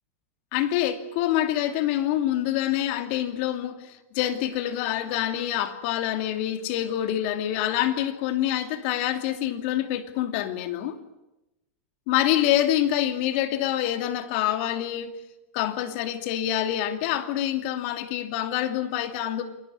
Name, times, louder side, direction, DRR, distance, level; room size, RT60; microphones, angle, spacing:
voice 1, 0.5-11.0 12.1-15.2 15.5-19.4, left 12 dB, 60° left, 2.8 m, -26 dB
27.5 x 19.5 x 8.5 m
supercardioid pair, 130°, 7 cm